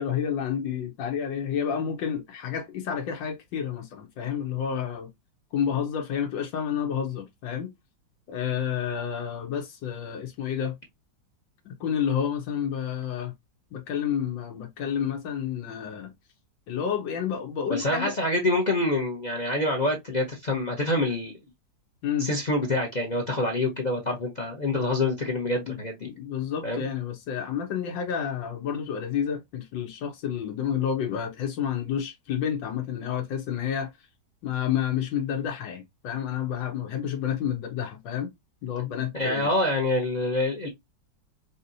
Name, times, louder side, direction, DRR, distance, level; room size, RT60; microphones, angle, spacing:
voice 1, 0.0-5.1 5.5-7.7 8.3-10.8 11.6-13.3 13.7-16.1 16.7-18.2 22.0-22.3 25.7-25.8 26.0-33.9 34.4-38.3 38.6-39.5, left 8 dB, 85° left, 1.5 m, -30 dB
voice 2, 17.7-21.4 22.2-26.1 26.6-26.8 39.1-40.7, left 2 dB, 40° left, 0.6 m, -26 dB
4.9 x 2.7 x 2.6 m
omnidirectional pair, 2.0 m